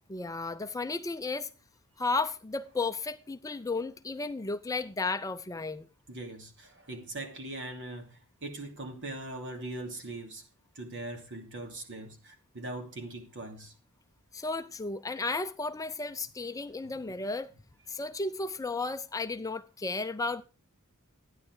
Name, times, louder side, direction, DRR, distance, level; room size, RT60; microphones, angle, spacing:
voice 1, 0.1-1.5 2.0-5.9 14.3-17.5 17.9-20.4, left 3 dB, 15° left, 0.5 m, -33 dB
voice 2, 6.1-10.4 10.7-13.7 16.8-16.9, right 2 dB, 60° right, 2.7 m, -41 dB
12.5 x 9.8 x 4.8 m
head